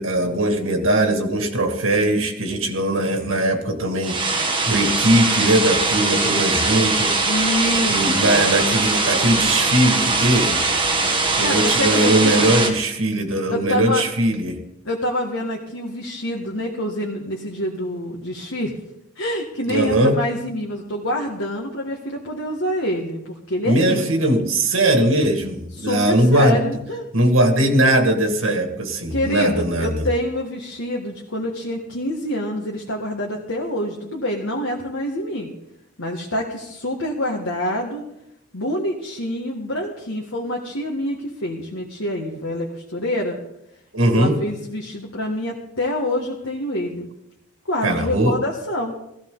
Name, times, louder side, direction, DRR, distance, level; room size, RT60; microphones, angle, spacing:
voice 1, 0.0-4.3 4.6-7.2 7.9-10.6 11.4-14.6 19.7-20.2 23.6-26.7 27.1-30.0 43.9-44.4 47.8-48.4, right 1 dB, 75° right, 5 dB, 2.1 m, -20 dB
sound 1, 4.0-12.7, right 3 dB, 25° right, 1.7 m, -21 dB
voice 2, 7.2-8.5 11.1-12.5 13.5-14.0 14.8-18.8 19.1-24.3 25.8-27.1 29.1-35.5 36.0-38.0 38.5-43.4 44.1-47.1 47.7-49.0, left 1 dB, 85° left, -1 dB, 1.7 m, -26 dB
16.0 x 15.5 x 4.0 m, 0.83 s
head